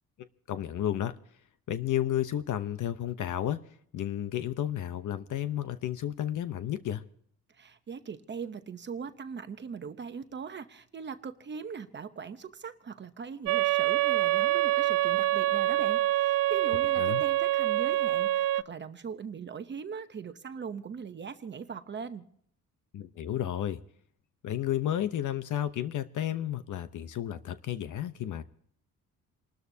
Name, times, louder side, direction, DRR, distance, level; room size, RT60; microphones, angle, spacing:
voice 1, 0.5-1.1 1.7-3.6 3.9-7.0 17.0-17.2 22.9-23.8 24.4-28.4, left 11 dB, 60° left, 0.9 m, -32 dB
voice 2, 7.5-22.2, right 6 dB, 35° right, 0.8 m, -40 dB
sound 1, 13.5-18.6, right 16 dB, 70° right, 0.5 m, -26 dB
29.0 x 13.0 x 2.8 m
cardioid pair, 145°, 34 cm